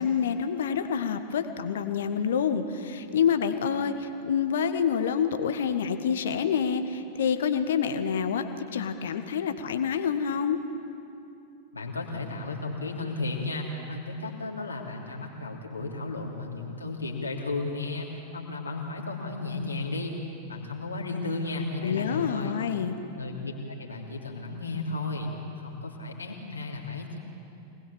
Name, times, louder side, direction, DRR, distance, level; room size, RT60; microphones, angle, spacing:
voice 1, 0.0-10.6 21.8-23.0, left 7 dB, 60° left, 9 dB, 1.4 m, -27 dB
voice 2, 11.7-20.1 20.5-22.6 23.1-25.3 25.6-27.2, left 3 dB, 80° left, -1 dB, 3.0 m, -34 dB
25.5 x 19.5 x 7.3 m, 2.7 s
figure-of-eight pair, 90°, 0 cm